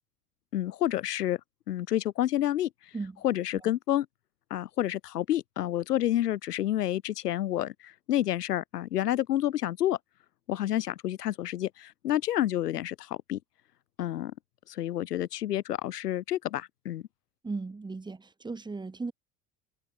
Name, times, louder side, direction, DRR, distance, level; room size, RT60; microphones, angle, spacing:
voice 1, 0.5-1.4 1.7-2.7 3.2-4.1 4.5-10.0 10.5-13.4 14.0-14.3 14.7-17.0, left 13 dB, 80° left, 0.5 m, -29 dB
voice 2, 17.4-19.1, right 3 dB, 10° right, 1.0 m, -36 dB
figure-of-eight pair, 65°, 46 cm